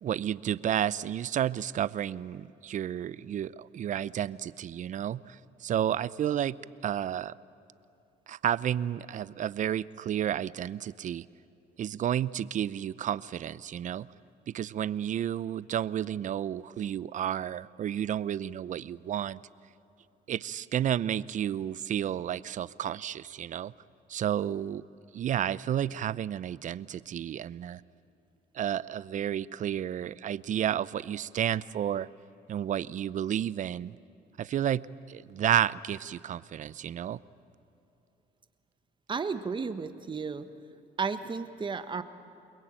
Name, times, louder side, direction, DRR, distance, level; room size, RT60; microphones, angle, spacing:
voice 1, 0.0-6.6 6.8-7.3 8.3-11.2 11.8-14.1 14.5-19.4 20.3-23.7 24.1-24.8 25.1-27.8 28.5-32.1 32.5-33.9 34.4-37.2, right 10 dB, 50° right, 18 dB, 0.7 m, -31 dB
voice 2, 39.1-40.5 41.0-42.0, right 5 dB, 30° right, 10 dB, 1.3 m, -33 dB
29.0 x 21.5 x 9.0 m, 2.8 s
cardioid pair, 110°, 17 cm